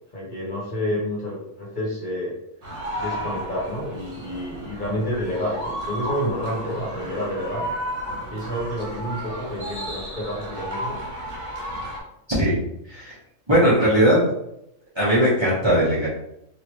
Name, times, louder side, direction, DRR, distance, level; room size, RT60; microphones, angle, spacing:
voice 1, 0.1-2.3 3.0-7.7 8.3-11.0, equal, 40° left, -5 dB, 1.1 m, -29 dB
sound 1, 2.6-12.0, equal, 70° right, 1.3 m, -33 dB
voice 2, 13.5-14.2 14.9-16.1, equal, 25° right, -9 dB, 1.0 m, -18 dB
3.1 x 2.6 x 3.0 m, 0.77 s
omnidirectional pair, 1.3 m